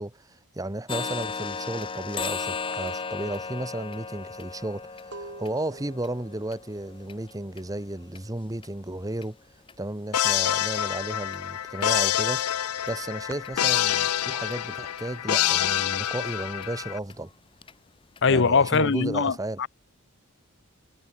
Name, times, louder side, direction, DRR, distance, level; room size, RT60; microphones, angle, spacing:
voice 1, 0.0-9.4 9.8-17.3 18.3-19.7, right 1 dB, 15° right, 1.2 m, -34 dB
sound 1, 0.9-8.7 9.1-9.3 9.7-9.8 10.3-10.4 10.7-10.8 11.3-11.4 11.8-11.9 12.4-12.5 12.9-13.0 13.4-13.5 13.9-14.0 14.5-14.6 15.0-15.1 15.6-15.7 16.0-16.1 16.6-16.7 17.1-17.2 17.6-17.7 18.2-18.3 18.7-18.8, left 5 dB, 25° left, 0.7 m, -36 dB
sound 2, 2.2-2.4 2.7-8.4 8.7-9.2 9.5-10.6 11.0-13.6, right 3 dB, 55° right, 2.6 m, -48 dB
sound 3, 10.1-17.0, left 12 dB, 90° left, 0.5 m, -26 dB
voice 2, 18.2-19.7, left 5 dB, 55° left, 0.7 m, -22 dB
head